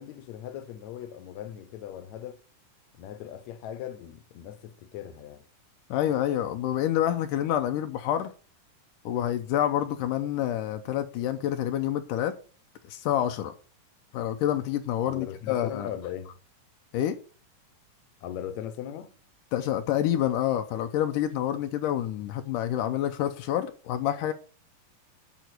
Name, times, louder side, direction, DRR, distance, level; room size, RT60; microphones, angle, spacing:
voice 1, 0.0-2.4 3.0-5.4 15.0-16.4 18.2-19.1, left 10 dB, 65° left, 2.1 m, -39 dB
voice 2, 5.9-8.3 9.1-12.3 12.9-13.5 14.1-15.9 16.9-17.2 19.5-24.3, left 11 dB, 85° left, 2.3 m, -27 dB
9.3 x 5.7 x 6.5 m
omnidirectional pair, 3.8 m